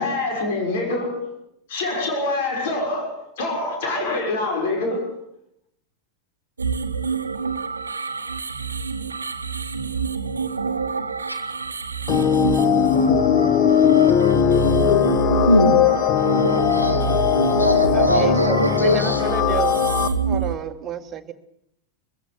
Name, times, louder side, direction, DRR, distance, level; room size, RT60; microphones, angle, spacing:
voice 1, 0.0-1.3 1.7-5.1, left 2 dB, 55° left, 3 dB, 6.6 m, -25 dB
sound 1, 6.6-20.6, right 5 dB, 75° right, 1.2 m, -27 dB
sound 2, 12.1-20.1, left 9 dB, 35° left, 1.5 m, -19 dB
voice 2, 15.4-15.9 16.1-17.1 17.5-19.2, equal, 90° left, 6 dB, 2.0 m, -21 dB
voice 3, 17.9-19.9 20.2-21.3, right 8 dB, 25° right, 7 dB, 1.8 m, -29 dB
22.0 x 15.5 x 8.3 m, 0.74 s
figure-of-eight pair, 90°, 0 cm